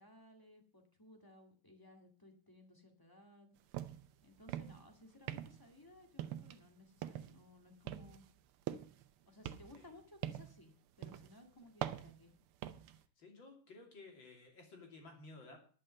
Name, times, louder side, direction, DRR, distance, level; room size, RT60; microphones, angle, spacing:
voice 1, 0.0-3.5 4.2-8.3 9.3-12.3, left 1 dB, 10° left, 3 dB, 1.9 m, -60 dB
sound 1, 3.7-4.1 4.4-4.9 5.3-5.7 6.2-6.6 7.0-7.4 7.9-9.1 9.4-10.6 11.0-11.3 11.8-13.0, right 12 dB, 85° right, 1.6 m, -43 dB
voice 2, 13.2-15.6, left 3 dB, 60° left, 2 dB, 3.6 m, -55 dB
11.0 x 6.6 x 7.5 m, 0.43 s
omnidirectional pair, 2.4 m